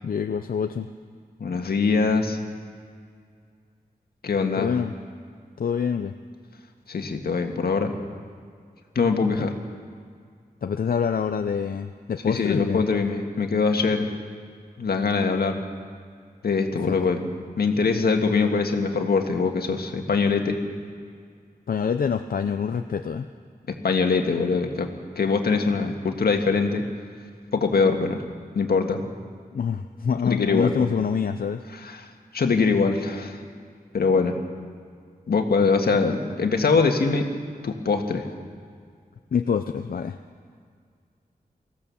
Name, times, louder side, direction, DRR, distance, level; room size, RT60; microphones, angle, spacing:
voice 1, 0.0-0.9 4.6-4.9 5.6-6.1 9.3-9.5 10.6-12.8 16.8-17.0 21.7-23.3 29.5-31.6 39.3-40.2, left 6 dB, 70° left, 7 dB, 0.6 m, -26 dB
voice 2, 1.4-2.4 4.2-4.7 6.9-7.9 9.0-9.5 12.2-14.1 14.8-15.6 16.4-17.2 17.6-20.6 23.7-24.9 25.2-26.8 27.5-28.2 28.6-29.0 30.2-30.8 31.8-32.1 32.3-33.4 33.9-34.4 35.3-37.3 37.6-38.3, left 4 dB, 85° left, 4 dB, 1.8 m, -23 dB
24.0 x 15.0 x 7.2 m, 2.1 s
wide cardioid pair, 115°, 16 cm